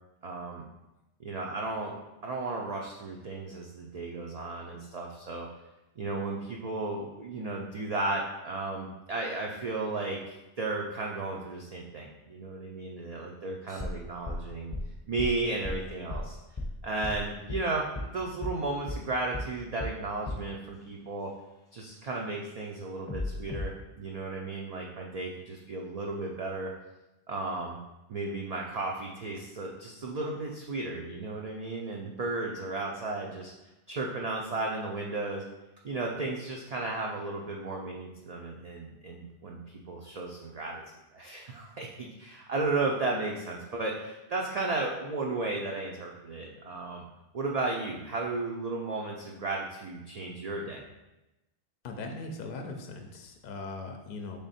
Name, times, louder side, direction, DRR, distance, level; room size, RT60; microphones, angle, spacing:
voice 1, 0.2-0.6 1.2-1.9 2.2-5.5 6.0-14.7 15.1-16.4 16.8-21.3 21.7-26.7 27.3-27.8 28.1-33.5 33.9-35.4 35.8-39.6 39.9-40.8 41.1-47.0 47.3-50.9, right 3 dB, 60° right, -1 dB, 0.4 m, -34 dB
sound 1, 13.7-17.6 18.0-18.1 18.4-18.6 18.9-19.0 19.3-19.5 19.8-20.0 20.3-20.5 23.1-23.7, left 1 dB, 20° left, 0.7 m, -35 dB
voice 2, 51.8-54.4, left 3 dB, 60° left, 4 dB, 0.6 m, -39 dB
3.5 x 3.4 x 4.1 m, 0.98 s
omnidirectional pair, 1.1 m